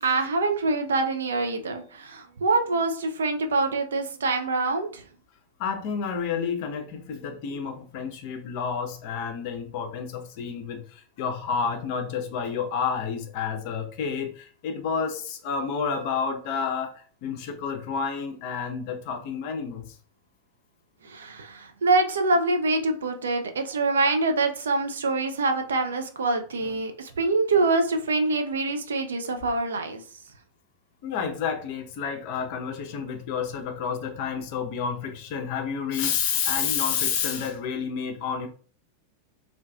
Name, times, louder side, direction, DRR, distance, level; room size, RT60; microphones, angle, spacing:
voice 1, 0.0-5.0 21.0-30.0, right 3 dB, 65° right, 6 dB, 0.4 m, -25 dB
voice 2, 5.6-20.0 26.6-26.8 31.0-38.5, left 6 dB, 45° left, 5 dB, 0.5 m, -30 dB
2.5 x 2.3 x 2.3 m, 0.42 s
figure-of-eight pair, 90°, 0 cm